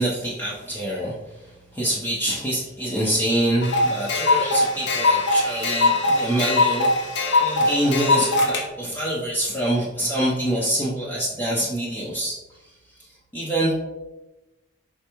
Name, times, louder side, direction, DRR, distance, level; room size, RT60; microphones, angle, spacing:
voice 1, 0.0-13.7, right 1 dB, 10° left, -6 dB, 0.6 m, -26 dB
sound 1, 3.6-8.6, left 2 dB, 60° left, 0.7 m, -21 dB
4.4 x 3.4 x 3.0 m, 1.0 s
head